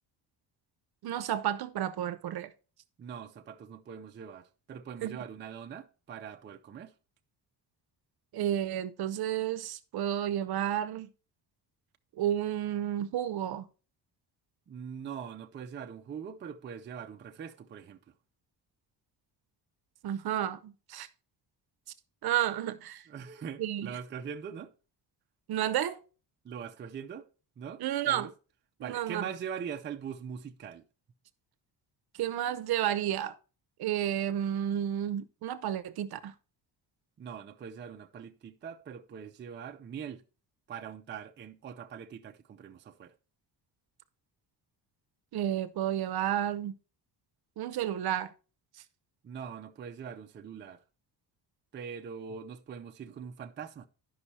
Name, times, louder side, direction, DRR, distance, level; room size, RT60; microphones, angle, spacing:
voice 1, 1.0-2.5 5.0-5.2 8.3-11.1 12.1-13.7 20.0-21.1 22.2-23.1 23.6-24.0 25.5-26.0 27.8-28.3 28.8-29.2 32.2-33.4 33.8-36.3 45.3-46.7 47.6-48.3, right 11 dB, 60° right, 0.7 m, -31 dB
voice 2, 3.0-6.9 14.7-18.0 23.1-24.7 26.4-27.2 27.6-28.3 28.8-30.8 37.2-40.2 40.7-43.1 49.2-50.8 51.7-53.9, right 7 dB, 25° right, 0.4 m, -42 dB
11.5 x 5.5 x 4.2 m
cardioid pair, 180°, 43 cm